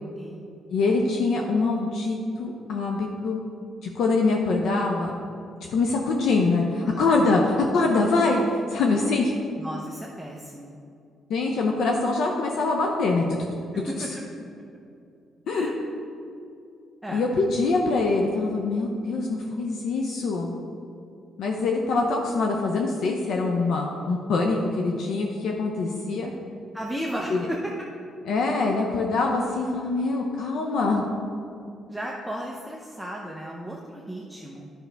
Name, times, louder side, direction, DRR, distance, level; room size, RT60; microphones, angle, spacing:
voice 1, 0.7-3.4 3.8-5.2 5.7-9.3 11.3-13.3 15.5-15.7 17.1-20.5 21.4-26.3 27.3-27.5 28.3-31.0, left 3 dB, 75° left, 1 dB, 0.7 m, -24 dB
voice 2, 9.6-10.8 13.7-14.1 15.5-15.7 17.0-17.2 26.7-27.7 31.9-34.7, right 1 dB, ahead, -3 dB, 0.7 m, -34 dB
10.5 x 5.7 x 3.4 m, 2.6 s
cardioid pair, 90°, 0 cm